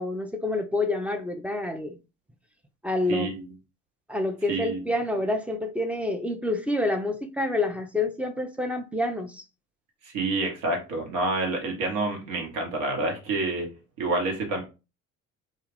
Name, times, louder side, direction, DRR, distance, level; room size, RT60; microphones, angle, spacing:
voice 1, 0.0-1.9 2.8-3.3 4.1-9.4, left 2 dB, 5° right, 0.4 m, -28 dB
voice 2, 3.1-3.5 4.5-4.8 10.0-13.7 14.0-14.6, right 2 dB, 70° right, 1.1 m, -28 dB
2.3 x 2.3 x 3.3 m
hypercardioid pair, 55°, 40 cm